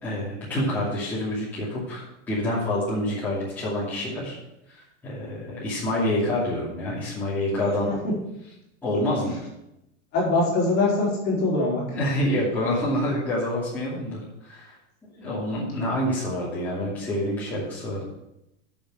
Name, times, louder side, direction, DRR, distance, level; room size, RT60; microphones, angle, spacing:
voice 1, 0.0-4.4 4.7-7.9 8.8-9.3 11.9-14.7 15.2-18.0, left 1 dB, 5° left, -11 dB, 2.7 m, -27 dB
voice 2, 10.1-11.8, left 2 dB, 30° left, -4 dB, 3.6 m, -23 dB
8.3 x 6.7 x 8.1 m, 0.87 s
supercardioid pair, 175°, 35 cm